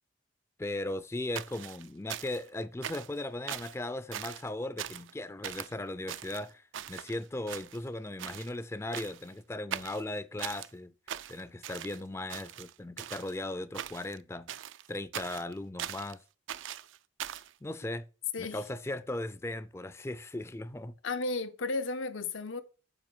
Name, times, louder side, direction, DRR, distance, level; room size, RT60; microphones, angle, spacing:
voice 1, 0.6-6.6 6.9-10.9 11.3-14.5 14.9-16.2 17.6-18.1 18.4-20.9, left 1 dB, 15° left, 0.4 m, -37 dB
sound 1, 1.4-2.5 2.8-3.2 3.5-3.8 4.1-4.5 4.8-5.1 5.4-5.7 6.1-7.2 7.5-7.9 8.2-8.5 8.9-9.3 9.7-10.7 11.1-12.0 12.3-13.3 13.7-14.2 14.5-16.1 16.5-17.5, right 10 dB, 75° right, 0.4 m, -41 dB
voice 2, 21.0-22.6, left 3 dB, 85° left, 0.8 m, -34 dB
7.6 x 4.9 x 6.2 m
head